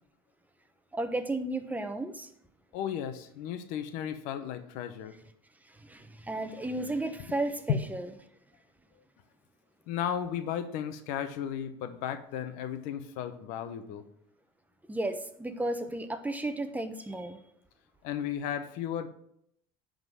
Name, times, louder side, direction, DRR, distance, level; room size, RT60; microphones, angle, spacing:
voice 1, 0.9-2.3 5.7-8.1 14.9-17.4, right 2 dB, 10° right, 8 dB, 1.0 m, -33 dB
voice 2, 2.7-5.2 7.2-7.3 7.7-7.8 9.9-14.0 18.0-19.1, left 9 dB, 75° left, 10 dB, 0.9 m, -34 dB
10.5 x 3.9 x 6.2 m, 0.72 s
supercardioid pair, 90°, 14 cm